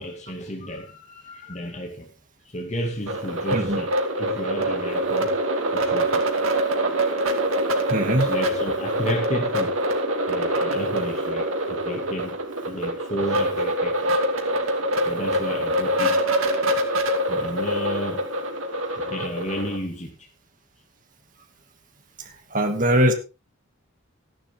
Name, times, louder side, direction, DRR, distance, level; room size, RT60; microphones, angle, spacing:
voice 1, 0.0-2.1 2.4-5.4 5.7-6.3 8.1-9.8 10.3-12.4 12.7-14.2 15.1-16.2 17.3-18.3 18.9-20.3, equal, 35° left, 2.3 m, -32 dB
sound 1, 3.1-19.8, right 1 dB, 85° right, 2.7 m, -25 dB
voice 2, 7.9-8.3 22.5-23.1, right 1 dB, 40° right, 2.5 m, -20 dB
14.5 x 11.5 x 3.7 m
head